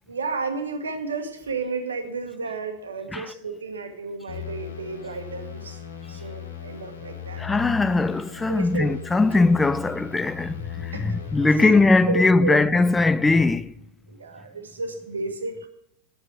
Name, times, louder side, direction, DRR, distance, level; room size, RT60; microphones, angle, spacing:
voice 1, 0.1-5.8 6.1-7.4 8.5-9.2 10.9-11.7 12.1-12.6 14.1-15.7, right 4 dB, 70° right, 1.3 m, -32 dB
sound 1, 4.3-12.0, left 10 dB, 70° left, 1.4 m, -38 dB
voice 2, 7.4-13.7, left 3 dB, 10° left, 0.3 m, -20 dB
8.3 x 6.3 x 7.5 m
figure-of-eight pair, 90°, 0 cm